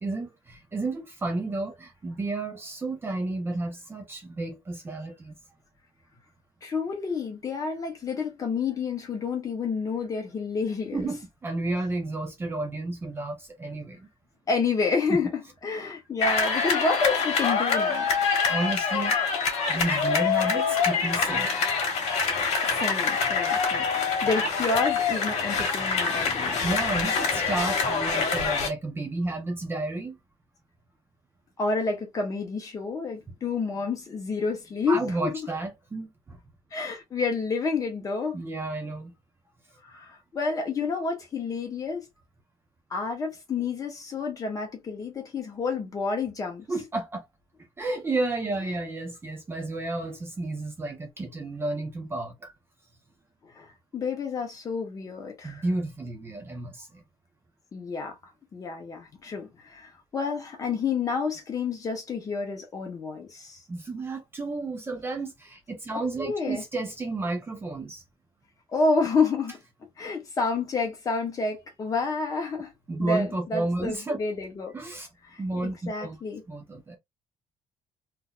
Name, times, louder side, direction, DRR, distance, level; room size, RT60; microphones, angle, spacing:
voice 1, 0.0-5.3 10.9-14.1 18.5-19.1 19.7-21.5 26.6-30.2 34.9-36.4 38.3-39.1 46.7-47.2 47.8-52.5 55.4-57.0 63.7-68.0 72.9-74.2 74.7-75.1 75.4-76.2 76.5-77.0, right 2 dB, 20° right, 0.7 m, -31 dB
voice 2, 6.6-11.1 14.5-18.1 22.8-26.6 31.6-35.4 36.7-38.4 39.8-42.1 42.9-46.7 48.7-48.8 53.4-55.6 57.7-58.2 58.5-63.6 66.2-66.6 68.7-69.6 70.0-72.7 73.0-74.8 75.3-76.4, left 4 dB, 30° left, 1.3 m, -29 dB
sound 1, 16.2-28.7, left 5 dB, 65° left, 1.6 m, -25 dB
3.7 x 2.8 x 2.4 m
cardioid pair, 160°, 12 cm